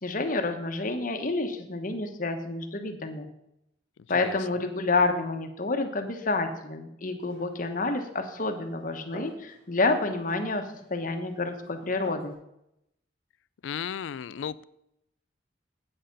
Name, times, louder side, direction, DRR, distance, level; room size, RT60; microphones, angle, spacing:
voice 1, 0.0-3.3 4.1-10.6 10.9-12.4, left 3 dB, 45° left, 6 dB, 1.1 m, -29 dB
Glass, 7.2-12.3, right 1 dB, 75° right, 4.4 m, -51 dB
voice 2, 13.6-14.6, left 8 dB, 90° left, 18 dB, 0.4 m, -34 dB
8.4 x 7.8 x 5.2 m, 0.81 s
head